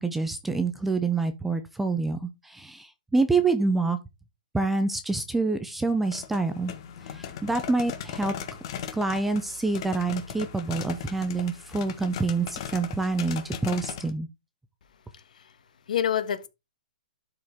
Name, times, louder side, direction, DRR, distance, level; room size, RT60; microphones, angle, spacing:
voice 1, 0.0-4.0 4.5-6.7 7.0-8.3 8.9-14.3, right 3 dB, 5° right, 0.4 m, -27 dB
sound 1, 5.9-14.1, left 8 dB, 35° left, 1.3 m, -38 dB
voice 2, 15.1-15.6 15.9-16.5, left 9 dB, 60° left, 1.4 m, -28 dB
12.0 x 4.9 x 3.5 m
hypercardioid pair, 175°, 5 cm